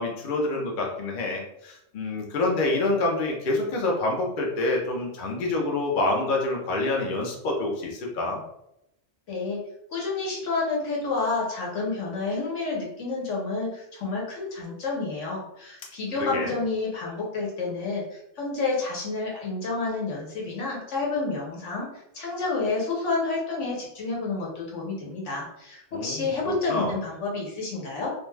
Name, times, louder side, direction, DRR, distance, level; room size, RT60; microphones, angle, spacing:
voice 1, 0.0-8.4 16.2-16.5 25.9-26.9, left 2 dB, 50° left, -1 dB, 0.7 m, -27 dB
voice 2, 9.3-9.6 9.9-21.9 22.1-28.1, left 3 dB, 80° left, -3 dB, 1.2 m, -29 dB
2.5 x 2.2 x 3.1 m, 0.80 s
omnidirectional pair, 1.3 m